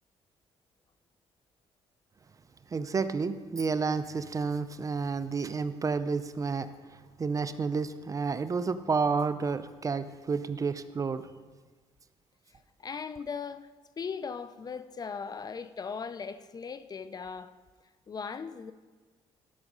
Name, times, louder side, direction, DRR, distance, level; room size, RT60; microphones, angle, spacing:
voice 1, 2.7-6.7 7.2-11.3, right 5 dB, 30° right, 0.5 m, -30 dB
voice 2, 12.8-13.7 14.0-17.5 18.1-18.7, left 5 dB, 35° left, 0.5 m, -38 dB
12.0 x 5.9 x 5.4 m
cardioid pair, 100°, 11 cm